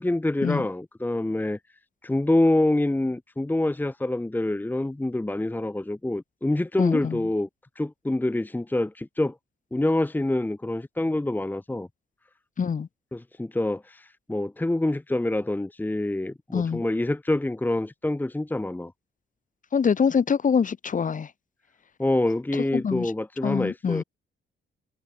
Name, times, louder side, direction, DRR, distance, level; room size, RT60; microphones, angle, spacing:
voice 1, 0.0-1.6 2.0-7.5 7.7-9.3 9.7-11.9 13.1-18.9 22.0-24.0, left 1 dB, 10° left, 1.5 m, -26 dB
voice 2, 6.8-7.2 12.6-12.9 16.5-16.8 19.7-21.3 22.5-23.1 23.4-24.0, left 6 dB, 40° left, 3.5 m, -25 dB
cardioid pair, 110°, 20 cm